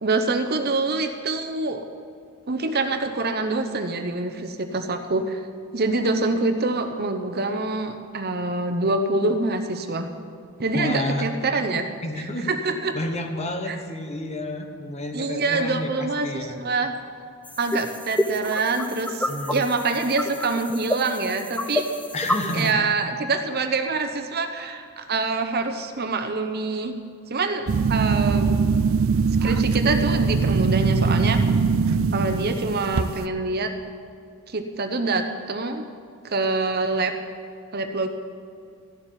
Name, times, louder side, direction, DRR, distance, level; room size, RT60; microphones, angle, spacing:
voice 1, 0.0-1.8 2.5-5.4 5.7-10.1 10.6-11.8 12.5-12.9 13.7-13.8 15.1-16.9 17.6-21.8 22.5-26.9 27.3-28.6 29.4-31.4 32.1-33.7 34.5-35.9 36.2-37.1 37.7-38.1, right 3 dB, 45° right, 7 dB, 0.9 m, -25 dB
voice 2, 10.7-11.3 12.0-12.5 12.9-16.6 19.3-19.6 22.1-22.8, left 1 dB, 30° left, 5 dB, 1.1 m, -30 dB
sound 1, 17.4-22.7, left 1 dB, 5° left, 0.6 m, -29 dB
sound 2, 27.7-33.3, right 5 dB, 65° right, 0.4 m, -21 dB
14.0 x 7.1 x 9.8 m, 2.3 s
head